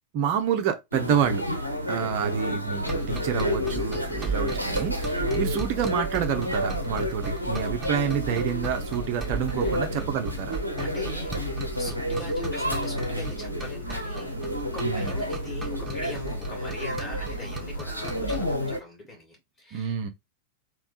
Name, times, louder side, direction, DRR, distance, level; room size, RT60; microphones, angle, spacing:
voice 1, 0.1-1.4 1.9-10.6 14.8-15.1 19.7-20.1, right 8 dB, 45° right, 0.9 m, -28 dB
sound 1, 0.9-18.8, equal, 90° right, 0.7 m, -30 dB
sound 2, 2.8-18.6, right 4 dB, 15° right, 1.2 m, -37 dB
voice 2, 4.1-4.5 9.6-10.1 10.8-11.3 11.8-14.3 14.7-20.0, left 1 dB, 20° left, 1.9 m, -42 dB
3.5 x 2.7 x 4.0 m
figure-of-eight pair, 90°, 0 cm